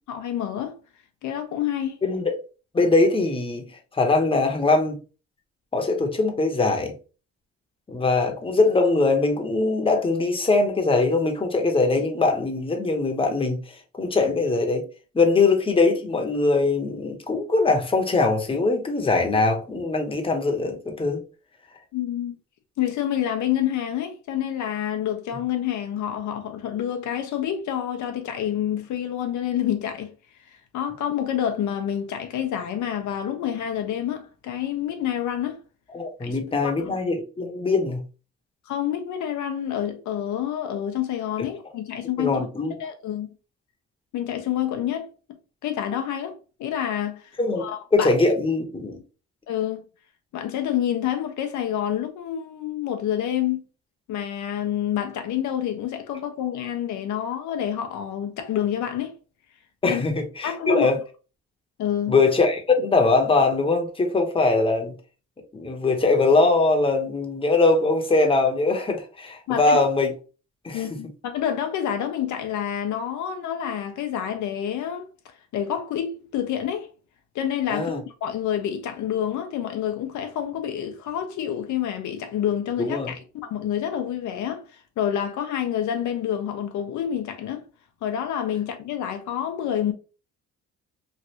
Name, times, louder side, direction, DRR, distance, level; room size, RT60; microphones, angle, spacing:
voice 1, 0.1-0.8 1.2-2.0 21.9-22.3 22.8-30.1 30.5-35.6 36.2-37.0 38.7-42.4 42.8-43.3 44.1-45.1 45.6-48.1 49.5-49.8 50.3-53.6 54.1-59.2 59.8-60.0 60.4-60.9 61.8-62.1 69.5-69.8 70.7-75.1 75.5-76.9 77.3-87.7 88.0-89.9, left 10 dB, 75° left, 0.6 m, -28 dB
voice 2, 2.0-2.3 2.7-3.7 3.9-5.0 5.7-6.9 7.9-14.9 15.1-21.2 35.9-38.0 42.2-42.7 47.4-47.6 47.9-49.0 59.8-61.0 62.1-65.0 65.5-70.1 70.6-70.8 77.7-78.0 82.8-83.1, left 3 dB, 20° left, 0.8 m, -22 dB
3.2 x 2.4 x 2.8 m
cardioid pair, 90°, 30 cm